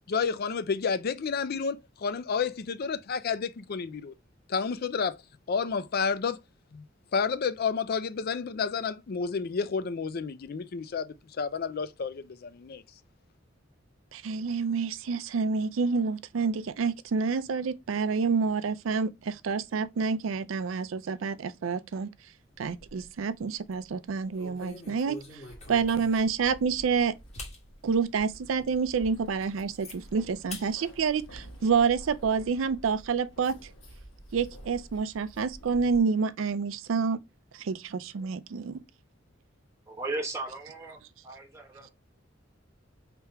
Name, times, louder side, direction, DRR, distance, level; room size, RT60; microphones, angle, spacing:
voice 1, 0.1-4.1 4.5-5.2 5.5-6.4 6.7-6.8 7.1-12.8, left 5 dB, 50° left, 0.4 m, -30 dB
voice 2, 14.1-22.1 22.6-25.4 25.7-27.2 27.8-33.7 34.3-37.2 37.5-38.8, right 5 dB, 90° right, 0.4 m, -28 dB
sound 1, 22.5-23.2 23.6-23.8 24.3-26.4 26.9-27.0 27.3-27.6 28.1-28.2 28.7-28.8 29.1-30.0 30.5-30.7 31.1-32.0, left 2 dB, 35° left, 1.7 m, -45 dB
Keys jangling, 25.5-36.0, right 1 dB, 75° left, 1.5 m, -49 dB
voice 3, 39.9-41.9, right 2 dB, 15° right, 0.9 m, -36 dB
3.4 x 2.9 x 4.5 m
head